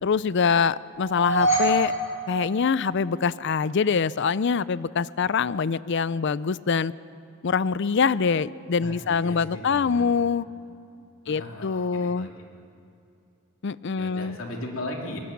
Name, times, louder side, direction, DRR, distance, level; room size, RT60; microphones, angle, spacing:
voice 1, 0.0-1.9 2.3-6.9 7.4-10.5 11.3-12.3 13.6-14.4, left 5 dB, 60° left, 18 dB, 0.5 m, -24 dB
sound 1, 0.9-3.2, right 1 dB, 35° left, 6.2 m, -26 dB
voice 2, 8.8-10.1 11.2-12.3 14.0-15.2, left 1 dB, 75° left, 0 dB, 3.0 m, -37 dB
24.0 x 19.5 x 7.3 m, 2.7 s
head